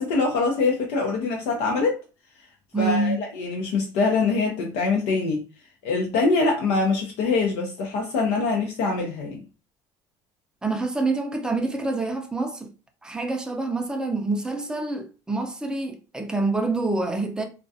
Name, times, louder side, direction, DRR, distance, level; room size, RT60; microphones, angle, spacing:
voice 1, 0.0-2.0 2.8-5.4 5.8-9.4, left 4 dB, 80° left, 0.6 m, -24 dB
voice 2, 2.7-3.2 10.6-12.7 13.0-17.4, right 3 dB, 10° right, 0.4 m, -26 dB
2.3 x 2.2 x 2.6 m
cardioid pair, 125°, 10 cm